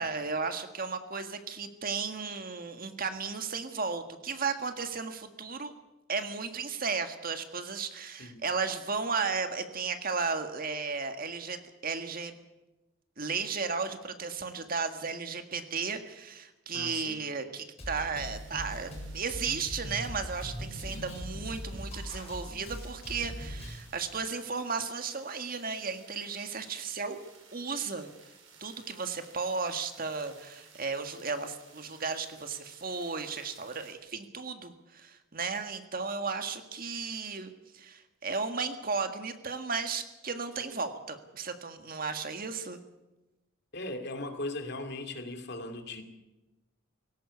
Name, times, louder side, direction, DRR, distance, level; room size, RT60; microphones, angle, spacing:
voice 1, 0.0-5.7 6.1-12.3 13.2-27.2 27.5-28.1 28.6-42.8, right 5 dB, 45° right, 7 dB, 1.8 m, -34 dB
voice 2, 16.7-17.2 20.9-21.1 43.7-46.0, left 2 dB, 55° left, 6 dB, 2.5 m, -38 dB
Drum kit, 17.8-23.8, equal, 30° left, 7.8 m, -40 dB
sound 1, 18.2-33.9, right 5 dB, 70° right, 5.6 m, -57 dB
18.0 x 18.0 x 8.3 m, 1.0 s
head